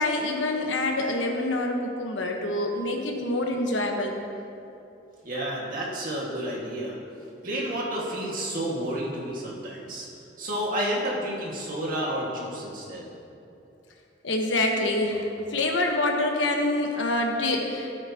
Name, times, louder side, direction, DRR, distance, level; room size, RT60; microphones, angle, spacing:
voice 1, 0.0-4.1 14.2-18.0, left 2 dB, 90° left, 2 dB, 1.2 m, -26 dB
voice 2, 5.2-7.0 7.4-10.1 10.4-13.1, right 1 dB, 50° right, -4 dB, 1.9 m, -30 dB
15.5 x 8.8 x 2.9 m, 2.7 s
head